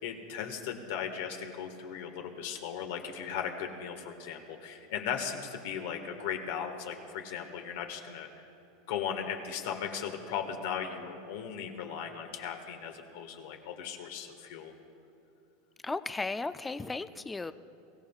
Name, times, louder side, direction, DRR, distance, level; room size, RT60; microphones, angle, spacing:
voice 1, 0.0-8.3 8.9-14.7, left 8 dB, 70° left, 4 dB, 1.6 m, -37 dB
voice 2, 15.8-17.5, left 3 dB, 10° left, 12 dB, 0.4 m, -35 dB
23.5 x 15.5 x 2.4 m, 2.8 s
supercardioid pair, 140°, 0 cm